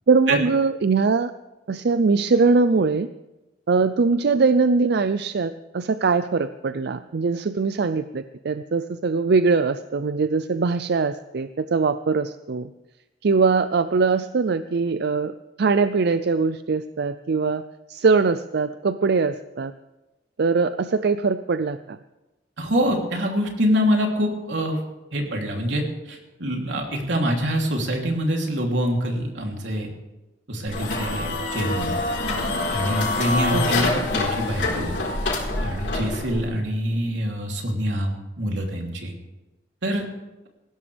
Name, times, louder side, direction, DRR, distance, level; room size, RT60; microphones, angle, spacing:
voice 1, 0.1-1.3 1.7-3.1 3.7-12.7 13.2-17.6 17.9-19.7 20.4-22.0 33.5-33.7, right 4 dB, 65° right, 12 dB, 0.5 m, -22 dB
voice 2, 22.6-24.8 25.1-29.9 30.5-32.0 32.7-35.0 35.6-39.1 39.8-40.0, equal, 90° right, 1 dB, 3.3 m, -25 dB
sound 1, 30.7-36.5, left 2 dB, 75° left, 4.3 m, -26 dB
19.5 x 16.0 x 3.5 m, 1.0 s
head